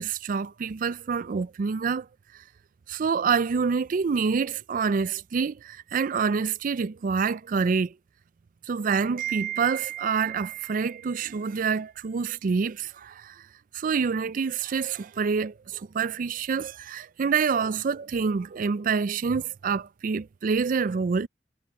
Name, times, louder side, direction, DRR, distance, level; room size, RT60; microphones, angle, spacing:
voice 1, 0.0-2.1 2.9-7.9 8.7-13.4 13.7-21.3, right 5 dB, 45° right, 0.4 m, -27 dB
head